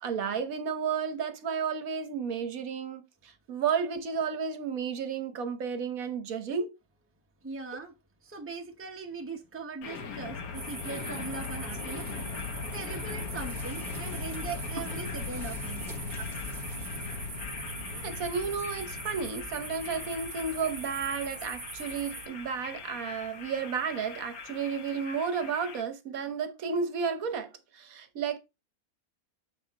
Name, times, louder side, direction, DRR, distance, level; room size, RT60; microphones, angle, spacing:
voice 1, 0.0-6.7 16.2-16.3 17.9-28.4, right 6 dB, 75° right, 1.4 m, -32 dB
voice 2, 7.4-7.9 8.2-12.2 12.7-15.8, right 4 dB, 10° right, 0.9 m, -40 dB
sound 1, 9.8-25.8, left 4 dB, 85° left, 1.4 m, -39 dB
sound 2, 10.5-22.3, right 4 dB, 40° right, 1.4 m, -42 dB
8.3 x 4.1 x 4.0 m
omnidirectional pair, 1.5 m